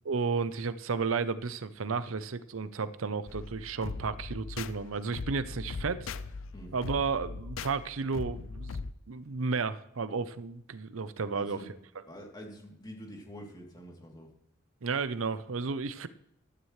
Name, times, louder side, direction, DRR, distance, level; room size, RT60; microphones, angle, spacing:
voice 1, 0.1-6.1 6.7-8.8 9.1-11.6 14.8-16.1, right 4 dB, 90° right, 14 dB, 0.7 m, -33 dB
sound 1, 3.3-8.9, left 4 dB, 90° left, 0.6 m, -40 dB
voice 2, 11.3-11.7 12.1-14.3, equal, 20° left, 0 dB, 3.0 m, -46 dB
14.5 x 12.5 x 3.2 m, 0.78 s
head